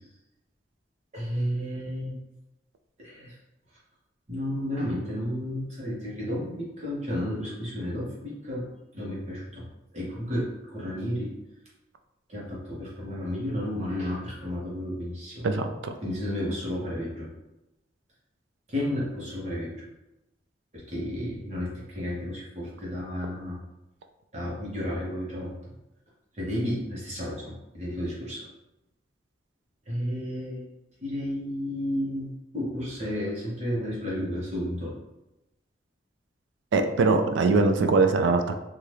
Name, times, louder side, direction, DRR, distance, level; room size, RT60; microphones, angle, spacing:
voice 1, 1.1-2.2 3.0-3.4 4.3-8.7 8.9-9.7 9.9-11.3 12.3-15.5 16.0-17.3 18.7-19.8 20.7-23.6 24.3-25.5 26.3-28.5 29.9-30.6 31.0-32.3 32.5-34.9, left 1 dB, 40° right, -6 dB, 1.0 m, -32 dB
voice 2, 15.4-15.9 36.7-38.5, right 3 dB, 90° right, 7 dB, 0.3 m, -22 dB
2.7 x 2.4 x 3.2 m, 0.96 s
head